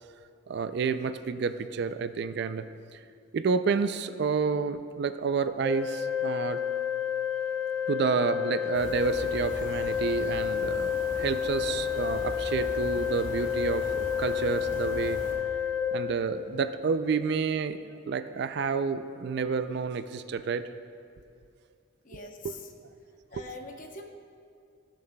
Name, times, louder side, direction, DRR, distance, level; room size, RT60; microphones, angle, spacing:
voice 1, 0.5-2.7 2.9-3.0 3.3-6.6 7.9-15.2 15.9-20.6 22.4-22.6 23.3-23.4, right 5 dB, 55° right, 11 dB, 0.3 m, -29 dB
Organ, 5.6-16.7, left 8 dB, 5° left, 0.5 m, -30 dB
sound 1, 8.7-15.3, equal, 65° left, 2.3 m, -40 dB
voice 2, 22.0-22.6 23.3-24.0, left 2 dB, 40° left, 3 dB, 0.8 m, -43 dB
19.0 x 7.3 x 2.2 m, 2.4 s
head